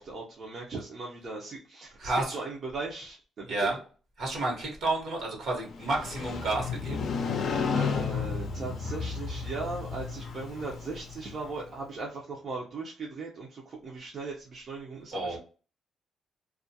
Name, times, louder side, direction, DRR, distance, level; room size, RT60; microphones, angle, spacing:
voice 1, 0.0-3.7 7.7-15.4, right 3 dB, 50° right, -3 dB, 0.6 m, -38 dB
voice 2, 2.0-2.4 3.5-3.8 4.2-7.1 15.1-15.4, right 2 dB, 70° right, 0 dB, 1.1 m, -30 dB
Motorcycle, 5.7-11.6, left 5 dB, 60° left, 0.4 m, -33 dB
2.4 x 2.2 x 2.7 m, 0.38 s
cardioid pair, 90°, 0 cm